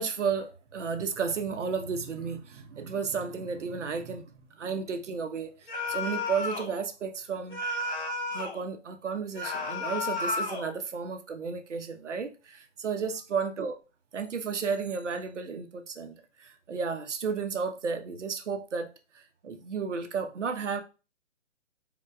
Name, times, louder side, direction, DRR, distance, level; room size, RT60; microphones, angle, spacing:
voice 1, 0.0-4.3 4.6-7.6 8.3-13.7 14.1-20.8, right 5 dB, 85° right, 1.0 m, -33 dB
sound 1, 5.7-6.7 7.5-8.6 9.3-10.7, left 3 dB, 65° left, 2.3 m, -32 dB
4.7 x 4.0 x 2.3 m
hypercardioid pair, 160°, 35 cm